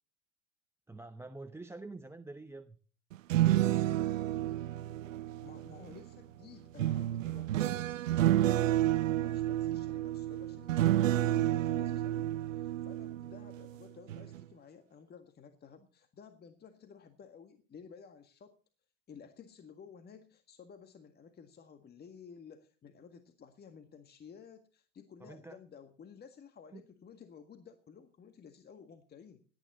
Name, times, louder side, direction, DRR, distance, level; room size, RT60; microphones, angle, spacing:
voice 1, 0.9-2.8 25.2-25.6 26.7-26.8, right 2 dB, 5° right, 10 dB, 0.8 m, -46 dB
sound 1, 3.1-6.0 6.8-13.7 14.1-14.4, right 13 dB, 80° right, 0.6 m, -30 dB
voice 2, 5.4-18.6 19.1-29.4, left 6 dB, 25° left, 8 dB, 1.7 m, -54 dB
17.5 x 12.0 x 4.1 m, 0.40 s
hypercardioid pair, 90°, 38 cm